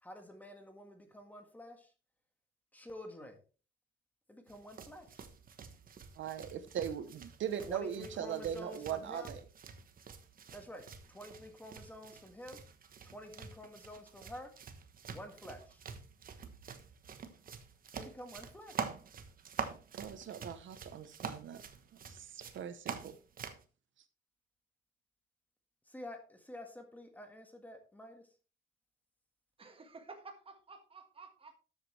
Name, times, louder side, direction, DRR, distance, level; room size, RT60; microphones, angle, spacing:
voice 1, 0.0-1.9 2.7-3.4 4.3-5.3 7.7-9.3 10.5-12.6 13.0-14.5 15.1-15.8 18.0-18.9 25.9-28.4, left 1 dB, 5° left, 1.7 m, -49 dB
sound 1, 4.5-23.6, right 6 dB, 45° right, 1.2 m, -47 dB
voice 2, 6.2-9.4 19.9-21.6 22.1-23.1, right 9 dB, 65° right, 1.0 m, -40 dB
voice 3, 29.6-31.5, right 4 dB, 25° right, 1.7 m, -52 dB
12.5 x 8.1 x 3.3 m
wide cardioid pair, 170°, 21 cm